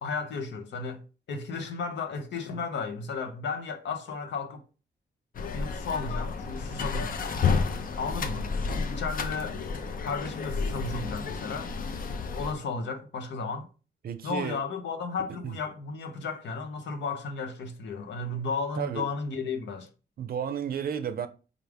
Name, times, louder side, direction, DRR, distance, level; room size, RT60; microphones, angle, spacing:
voice 1, 0.0-4.6 5.5-7.1 8.0-8.5 8.9-9.6 10.0-11.7 12.0-13.7 14.2-19.9, left 4 dB, 85° left, 0.7 m, -34 dB
sound 1, 5.3-12.5, left 5 dB, 50° left, 0.5 m, -31 dB
voice 2, 14.0-14.6 15.3-15.5 18.8-19.0 20.2-21.3, right 8 dB, 55° right, 0.5 m, -32 dB
4.6 x 2.5 x 3.4 m
cardioid pair, 105°, 18 cm